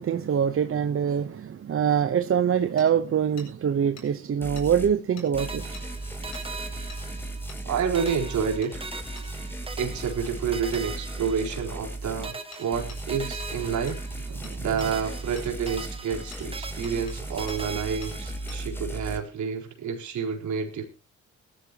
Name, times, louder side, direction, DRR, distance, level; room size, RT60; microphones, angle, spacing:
voice 1, 0.0-5.8 14.3-14.7, right 8 dB, 45° right, 0.9 m, -24 dB
Hammer, 2.8-2.9 3.4-3.5 4.0-4.1 4.6-4.7 5.2-5.3 5.7-5.9 6.3-6.5 6.9-7.0 7.5-7.6 8.1-8.2 8.6-8.7 9.2-9.3 10.7-10.9 12.5-12.6 12.9-13.0 13.4-13.5 13.9-14.0 14.4-14.9 15.4-15.8 16.3-16.4 16.8-17.2 17.5-17.6 18.0-18.1 18.5-18.6, left 4 dB, 60° left, 7.8 m, -46 dB
sound 1, 4.4-4.9 5.3-12.3 12.7-19.2, right 2 dB, 5° left, 3.2 m, -36 dB
sound 2, 5.4-7.7 7.9-11.9 12.2-14.5 14.8-18.7, right 3 dB, 20° right, 2.0 m, -41 dB
voice 2, 7.6-8.8 9.8-14.0 14.6-20.8, right 6 dB, 70° right, 4.4 m, -29 dB
19.5 x 12.5 x 3.0 m
cardioid pair, 90°, 30 cm